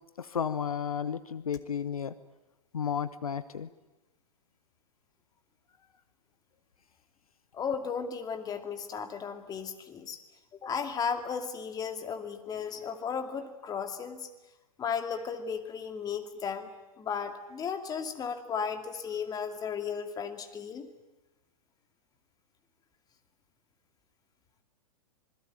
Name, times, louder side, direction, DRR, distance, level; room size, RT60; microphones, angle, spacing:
voice 1, 0.2-2.1 2.7-3.7, left 7 dB, 70° left, 14 dB, 1.1 m, -33 dB
voice 2, 7.5-10.2 10.6-14.3 14.8-16.7 17.0-20.9, left 6 dB, 20° left, 8 dB, 2.4 m, -35 dB
26.5 x 22.0 x 9.2 m, 1.0 s
figure-of-eight pair, 105°, 19 cm